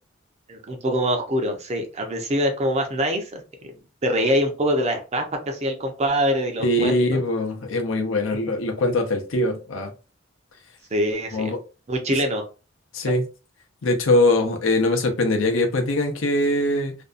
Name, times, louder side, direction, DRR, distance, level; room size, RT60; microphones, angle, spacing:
voice 1, 0.5-3.4 4.0-7.2 10.9-11.5 11.9-12.4, equal, 35° right, 0.5 m, -24 dB
voice 2, 6.6-9.9 11.3-11.6 12.9-13.3 13.8-17.0, left 1 dB, 85° left, 0.6 m, -22 dB
2.6 x 2.2 x 2.4 m
head